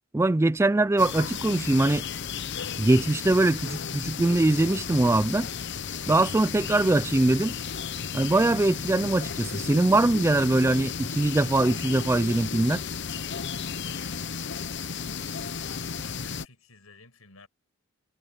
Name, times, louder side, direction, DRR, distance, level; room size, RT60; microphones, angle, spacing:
voice 1, 0.1-2.0 2.8-5.5 6.1-7.5 8.1-12.8, right 2 dB, 10° right, 0.3 m, -22 dB
sound 1, 1.0-16.5, left 6 dB, 55° left, 0.8 m, -34 dB
voice 2, 13.8-14.8 15.6-17.5, left 3 dB, 90° left, 7.5 m, -53 dB
head